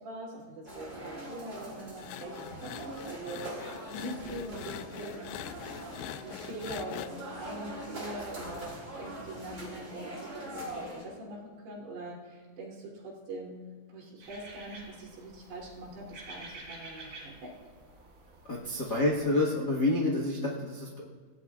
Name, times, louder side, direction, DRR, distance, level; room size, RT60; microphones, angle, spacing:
voice 1, 0.0-3.5 3.9-5.4 5.9-13.6 13.9-17.5 18.9-19.0, right 1 dB, 75° right, -4 dB, 5.2 m, -43 dB
sound 1, 0.6-11.0, right 1 dB, 20° right, 3.6 m, -42 dB
sound 2, 2.0-7.1, left 13 dB, 85° left, 2.7 m, -43 dB
sound 3, 14.2-19.2, right 2 dB, 50° right, 4.5 m, -49 dB
voice 2, 18.5-21.1, left 2 dB, 70° left, -2 dB, 0.9 m, -28 dB
26.5 x 16.0 x 2.5 m, 1.5 s
omnidirectional pair, 4.8 m